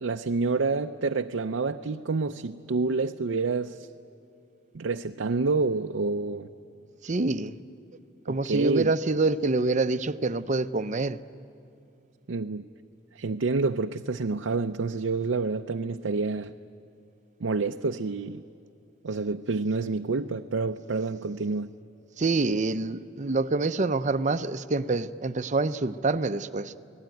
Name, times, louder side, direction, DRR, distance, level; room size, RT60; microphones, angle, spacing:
voice 1, 0.0-3.9 4.7-6.5 8.3-8.9 12.3-12.6 13.1-16.5 17.4-18.4 19.0-21.7, right 3 dB, 90° right, 5 dB, 0.6 m, -28 dB
voice 2, 7.0-7.6 8.3-11.2 22.2-26.7, right 3 dB, 40° right, 12 dB, 0.6 m, -26 dB
29.0 x 19.0 x 9.2 m, 2.6 s
head